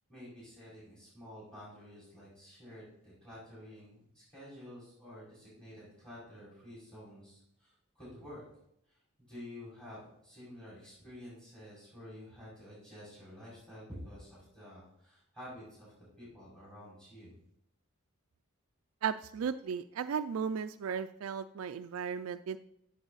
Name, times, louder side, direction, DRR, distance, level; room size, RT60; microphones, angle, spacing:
voice 1, 0.1-8.4 9.2-17.3, left 1 dB, 5° left, -8 dB, 4.9 m, -50 dB
voice 2, 19.0-22.6, right 7 dB, 90° right, 8 dB, 0.4 m, -35 dB
14.0 x 7.1 x 4.0 m, 0.76 s
head